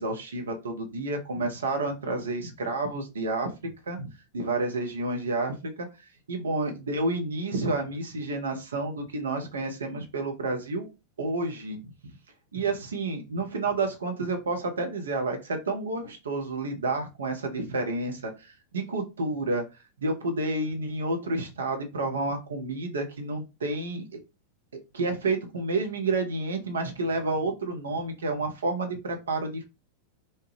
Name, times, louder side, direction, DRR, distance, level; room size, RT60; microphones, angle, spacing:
voice 1, 0.0-5.9 6.3-10.9 11.2-11.9 12.5-19.6 20.0-24.0 24.9-29.6, right 2 dB, 70° right, 4 dB, 0.6 m, -30 dB
2.8 x 2.2 x 3.1 m, 0.26 s
figure-of-eight pair, 90°, 0 cm